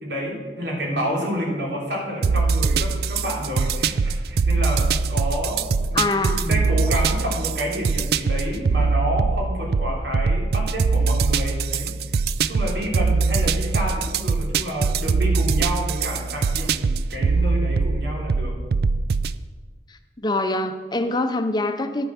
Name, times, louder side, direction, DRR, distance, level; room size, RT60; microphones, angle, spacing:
voice 1, 0.0-18.6, equal, 85° right, -1 dB, 3.2 m, -29 dB
sound 1, 2.2-19.4, right 4 dB, 60° right, 0.4 m, -22 dB
voice 2, 5.9-6.6 20.2-22.0, left 2 dB, 25° left, 7 dB, 0.6 m, -24 dB
11.0 x 8.6 x 5.8 m, 1.4 s
head